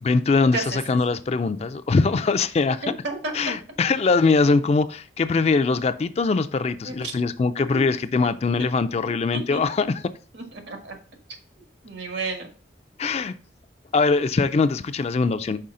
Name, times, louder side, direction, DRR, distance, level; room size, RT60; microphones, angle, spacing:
voice 1, 0.0-2.8 3.3-9.9 13.0-13.4 13.9-15.6, left 4 dB, 35° left, 0.3 m, -22 dB
voice 2, 2.8-3.4 6.8-7.1 8.2-8.3 9.3-9.6 10.3-10.9 11.8-12.5, right 3 dB, 75° right, 1.4 m, -31 dB
5.5 x 4.6 x 3.7 m
head